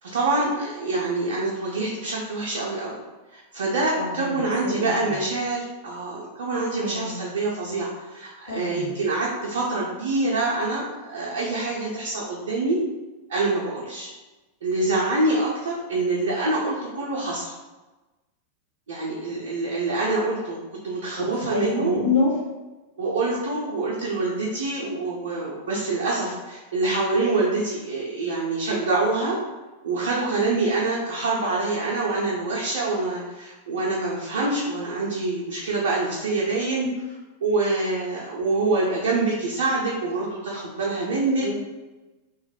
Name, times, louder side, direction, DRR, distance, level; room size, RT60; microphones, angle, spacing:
voice 1, 0.0-3.0 3.3-12.8 13.3-14.1 14.6-17.5 18.9-21.9 23.0-29.4 29.8-41.5, right 2 dB, 65° right, -4 dB, 0.5 m, -26 dB
voice 2, 4.0-5.1 6.8-7.2 8.5-8.9 21.2-22.3 41.4-41.5, left 3 dB, 75° left, -10 dB, 1.0 m, -27 dB
2.3 x 2.0 x 3.3 m, 1.2 s
figure-of-eight pair, 90°, 0 cm